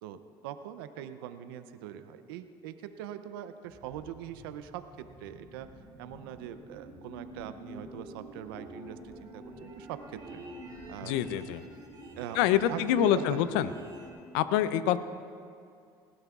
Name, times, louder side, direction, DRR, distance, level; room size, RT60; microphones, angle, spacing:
voice 1, 0.0-5.7 6.0-10.4 10.9-11.2 12.2-12.4 12.7-13.4, right 10 dB, 90° right, 10 dB, 0.5 m, -42 dB
sound 1, 3.7-14.1, right 1 dB, 35° right, 3.3 m, -48 dB
voice 2, 11.1-11.6 12.4-13.7 14.3-15.0, left 11 dB, 85° left, 13 dB, 0.5 m, -26 dB
19.5 x 16.0 x 2.4 m, 2.4 s
hypercardioid pair, 70°, 12 cm